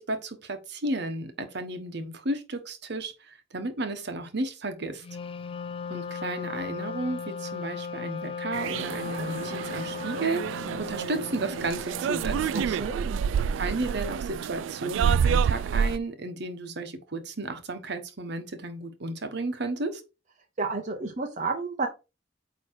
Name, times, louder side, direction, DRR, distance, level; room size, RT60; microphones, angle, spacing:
voice 1, 0.0-5.0 5.9-12.8 13.6-20.0, right 2 dB, 60° right, 1.2 m, -33 dB
Wind instrument woodwind instrument, 5.0-12.9, left 5 dB, 30° left, 0.4 m, -37 dB
sound 1, 8.5-16.0, right 7 dB, 85° right, 0.3 m, -28 dB
voice 2, 12.5-13.2 20.6-21.9, right 4 dB, 40° right, 0.9 m, -31 dB
8.8 x 3.1 x 4.6 m
head